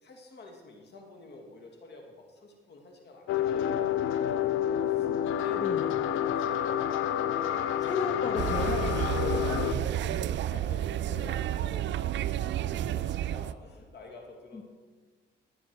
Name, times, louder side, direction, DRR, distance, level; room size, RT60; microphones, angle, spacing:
voice 1, 0.0-5.6 6.0-6.9 7.4-7.6 8.1-8.3 9.1-14.6, left 3 dB, 60° left, 2 dB, 2.4 m, -46 dB
sound 1, 3.3-9.7, left 10 dB, 85° left, 0.6 m, -29 dB
voice 2, 5.6-6.0 7.8-9.2 9.4-10.3 14.5-14.6, left 3 dB, 35° left, 2 dB, 1.5 m, -36 dB
sound 2, 8.4-13.5, right 12 dB, 65° right, 0.5 m, -31 dB
17.5 x 9.9 x 4.7 m, 1.5 s
cardioid pair, 90°, 20 cm